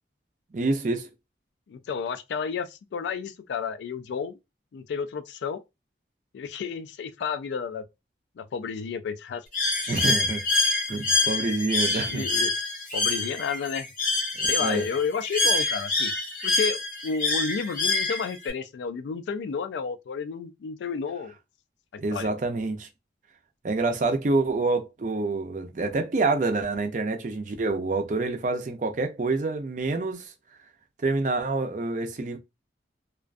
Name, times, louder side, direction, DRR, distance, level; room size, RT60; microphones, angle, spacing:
voice 1, 0.5-1.1 9.9-10.4 10.9-12.3 14.4-14.8 22.0-22.9 23.6-30.3 31.0-32.4, right 3 dB, 45° right, 0.5 m, -27 dB
voice 2, 1.7-4.4 4.7-5.6 6.3-7.8 8.4-9.4 12.1-12.5 12.9-13.9 14.5-16.1 16.4-21.3 22.1-22.3, left 5 dB, 80° left, 0.3 m, -31 dB
Bird, 9.5-18.5, left 3 dB, 45° left, 0.7 m, -26 dB
2.4 x 2.2 x 2.4 m
head